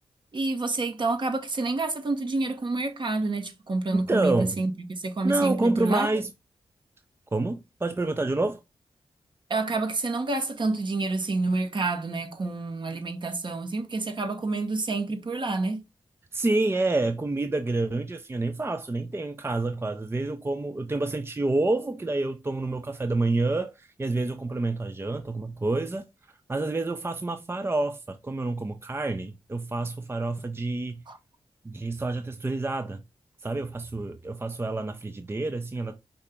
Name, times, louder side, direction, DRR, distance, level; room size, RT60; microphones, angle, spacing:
voice 1, 0.3-6.1 9.5-15.8 31.1-31.2, right 3 dB, 50° right, 1.1 m, -28 dB
voice 2, 3.9-4.6 5.2-6.3 7.3-8.6 16.3-31.0 31.6-33.0 33.4-36.0, right 2 dB, 25° right, 0.5 m, -28 dB
5.3 x 2.8 x 3.4 m
cardioid pair, 50°, 11 cm